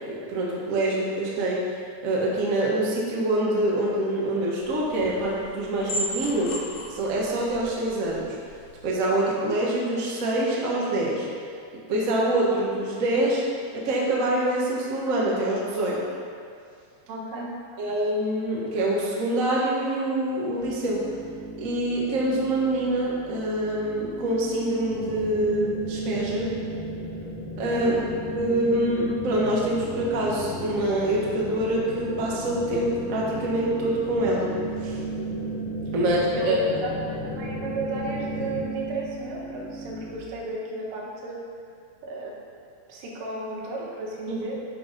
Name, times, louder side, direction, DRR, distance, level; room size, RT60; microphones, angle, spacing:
voice 1, 0.1-1.6 2.0-6.5 6.9-8.4 8.8-11.3 11.9-13.4 13.7-16.0 17.8-21.0 21.6-26.5 27.6-27.9 28.3-34.5 34.8-35.0 35.9-36.6 44.3-44.4, right 1 dB, 60° right, -4 dB, 0.8 m, -25 dB
sound 1, 4.6-8.9, equal, 65° left, 2.4 m, -37 dB
voice 2, 17.1-17.6 27.7-28.0 36.0-41.4 42.0-42.4 42.9-44.7, right 2 dB, 75° right, -2 dB, 2.9 m, -34 dB
sound 2, 20.6-40.2, right 5 dB, 35° right, 1.8 m, -37 dB
sound 3, 24.9-38.7, left 3 dB, 80° left, 2.5 m, -36 dB
11.0 x 4.7 x 5.2 m, 2.3 s
omnidirectional pair, 3.9 m